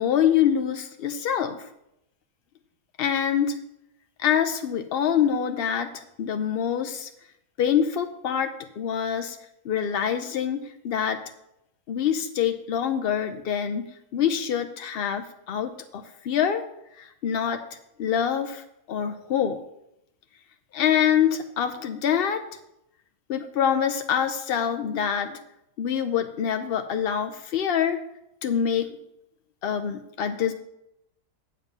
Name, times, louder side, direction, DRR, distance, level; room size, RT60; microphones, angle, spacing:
voice 1, 0.0-1.7 3.0-3.6 4.2-7.1 7.6-9.4 9.6-11.3 11.9-16.6 17.0-17.6 18.0-19.6 20.7-22.4 23.3-25.4 25.8-28.0 28.4-28.9 29.6-30.5, left 8 dB, 75° left, 7 dB, 0.5 m, -25 dB
7.7 x 7.3 x 5.4 m, 0.81 s
omnidirectional pair, 1.7 m